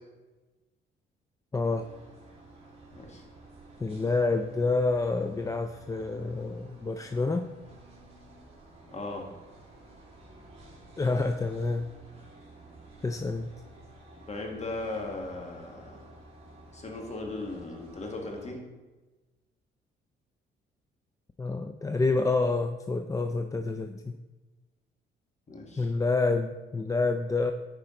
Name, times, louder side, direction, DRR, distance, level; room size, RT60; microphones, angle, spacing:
voice 1, 1.5-1.9 3.8-7.5 11.0-11.9 13.0-13.5 21.4-24.2 25.8-27.5, left 3 dB, 15° left, 7 dB, 0.4 m, -28 dB
sound 1, 1.6-18.5, right 2 dB, 30° right, 2.7 m, -52 dB
voice 2, 2.9-3.2 8.9-9.3 14.3-16.1 16.7-18.6 25.5-25.9, left 2 dB, 35° left, 1 dB, 1.7 m, -37 dB
10.0 x 4.9 x 3.8 m, 1.2 s
cardioid pair, 90°, 20 cm